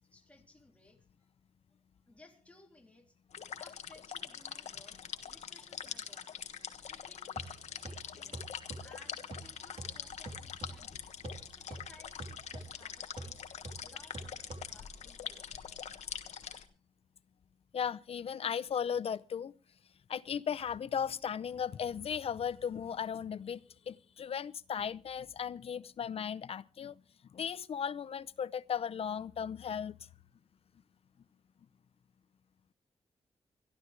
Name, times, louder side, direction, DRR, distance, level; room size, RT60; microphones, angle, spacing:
voice 1, 0.1-1.3 2.1-3.1 3.5-6.4 6.9-11.1 11.5-13.4 13.8-15.9, left 2 dB, 10° left, 2.9 m, -61 dB
sound 1, 3.3-16.7, left 8 dB, 80° left, 1.3 m, -44 dB
sound 2, 7.4-15.1, right 2 dB, 55° right, 3.6 m, -48 dB
voice 2, 17.7-19.5 20.1-27.0 27.3-30.0, left 7 dB, 60° left, 0.7 m, -36 dB
25.5 x 11.5 x 3.3 m
wide cardioid pair, 155°, 11 cm